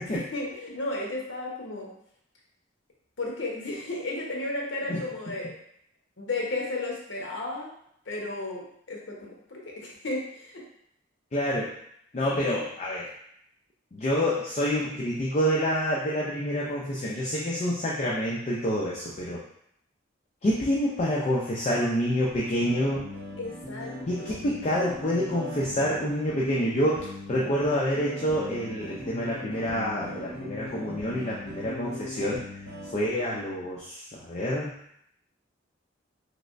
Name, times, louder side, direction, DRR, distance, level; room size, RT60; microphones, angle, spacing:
voice 1, 0.1-1.9 3.2-5.5 6.2-7.7 8.1-10.6 23.4-23.9 24.2-24.4, left 2 dB, 70° left, -2 dB, 0.9 m, -33 dB
voice 2, 11.3-11.7 12.1-13.1 13.9-19.4 20.4-23.0 24.1-32.4 32.9-34.8, equal, 35° left, -5 dB, 0.4 m, -27 dB
sound 1, 22.3-32.9, left 1 dB, 55° right, 1.3 m, -39 dB
3.2 x 3.1 x 2.5 m, 0.72 s
head